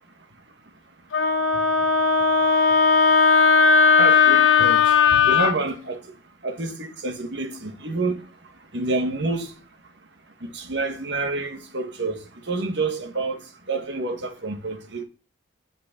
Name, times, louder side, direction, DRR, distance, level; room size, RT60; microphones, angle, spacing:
Wind instrument woodwind instrument, 1.1-5.5, left 5 dB, 85° left, 1.0 m, -17 dB
voice 1, 4.0-4.8 5.1-6.0 6.4-8.2 8.7-9.5 10.4-12.2 12.5-13.4 13.7-15.0, right 3 dB, 60° right, 1.8 m, -28 dB
7.6 x 6.4 x 7.3 m
head